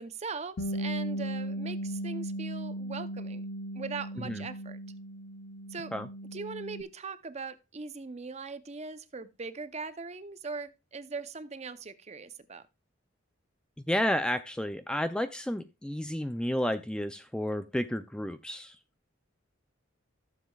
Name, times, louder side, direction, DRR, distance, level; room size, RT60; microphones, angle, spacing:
voice 1, 0.0-3.4 3.7-4.8 5.7-5.9 6.3-12.6, right 4 dB, 35° right, 0.6 m, -40 dB
Bass guitar, 0.6-6.8, right 1 dB, 60° left, 0.7 m, -37 dB
voice 2, 13.9-18.8, equal, 5° left, 0.4 m, -31 dB
15.0 x 7.3 x 2.3 m
head